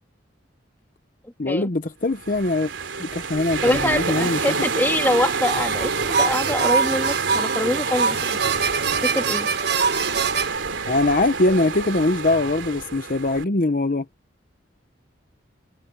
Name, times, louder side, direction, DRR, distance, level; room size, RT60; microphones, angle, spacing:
voice 1, 1.4-2.7 3.0-4.6 10.9-14.1, left 2 dB, 45° left, 0.8 m, -22 dB
sound 1, 2.1-13.4, right 5 dB, 85° right, 3.1 m, -27 dB
voice 2, 3.6-8.4 9.0-9.5, left 1 dB, 10° left, 2.6 m, -24 dB
sound 2, 5.1-10.6, right 5 dB, 55° right, 1.4 m, -24 dB
head